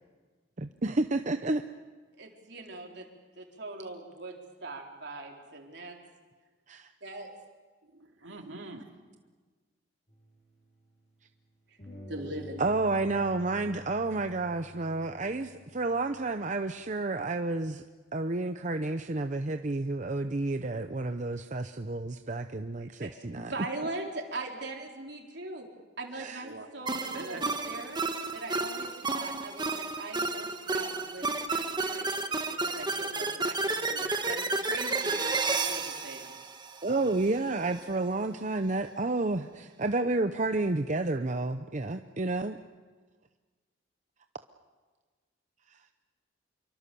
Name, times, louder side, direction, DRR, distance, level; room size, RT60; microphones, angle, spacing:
voice 1, 0.8-1.6 6.7-6.9 12.6-17.8 18.1-23.5 26.1-26.5 36.8-42.6, right 2 dB, 40° right, 7 dB, 0.7 m, -30 dB
voice 2, 2.2-3.1 3.4-6.0 7.0-7.3 12.1-12.7 22.8-25.7 26.0-28.0 28.3-32.2 32.5-36.4, right 2 dB, 60° right, 1 dB, 4.1 m, -41 dB
voice 3, 7.8-9.2 26.4-26.7 27.1-27.8, right 2 dB, 90° right, 3 dB, 2.5 m, -44 dB
sound 1, 10.1-11.3 11.8-17.0, left 2 dB, 35° left, 7.1 m, -50 dB
sound 2, 26.9-37.2, right 3 dB, 25° right, 1.4 m, -32 dB
27.0 x 24.0 x 7.0 m, 1.4 s
head